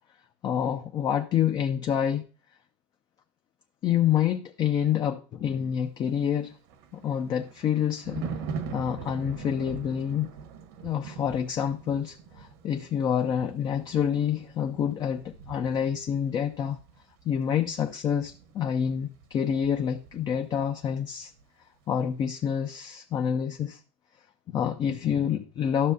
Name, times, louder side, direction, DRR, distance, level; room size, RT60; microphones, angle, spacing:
voice 1, 0.4-2.2 3.8-6.5 6.9-8.2 8.7-10.3 10.8-16.8 17.3-21.3 21.9-23.8 24.5-25.9, left 8 dB, 35° left, 0.6 m, -27 dB
Thunder, 6.3-20.9 21.1-21.4, right 5 dB, 75° right, 1.3 m, -43 dB
12.5 x 6.3 x 2.7 m
supercardioid pair, 135°, 13 cm